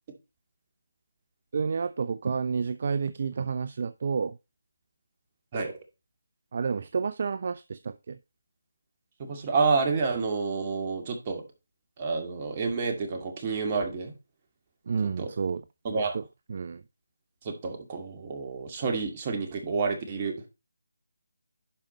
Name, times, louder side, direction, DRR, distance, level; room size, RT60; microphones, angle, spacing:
voice 1, 1.5-4.4 6.5-8.2 14.9-15.6 15.9-16.2 16.5-16.8, right 5 dB, 50° right, 0.4 m, -30 dB
voice 2, 9.2-11.4 12.0-14.1 15.2-15.3 15.8-16.2 17.4-20.4, right 4 dB, 30° right, 2.2 m, -29 dB
11.0 x 5.1 x 4.3 m
figure-of-eight pair, 160°, 0 cm